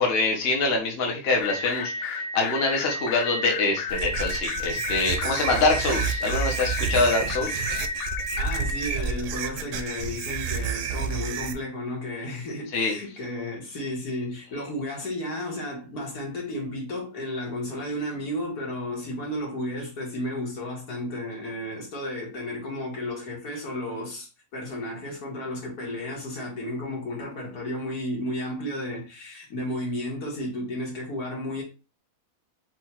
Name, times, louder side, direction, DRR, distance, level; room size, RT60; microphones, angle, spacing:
voice 1, 0.0-7.6 12.7-12.9, left 3 dB, 45° left, 1.0 m, -25 dB
sound 1, 1.4-8.9, left 4 dB, 65° left, 0.6 m, -32 dB
sound 2, 3.9-11.5, right 7 dB, 70° right, 0.9 m, -30 dB
voice 2, 8.4-31.6, left 1 dB, 85° left, 2.1 m, -33 dB
4.6 x 2.4 x 4.3 m
omnidirectional pair, 1.6 m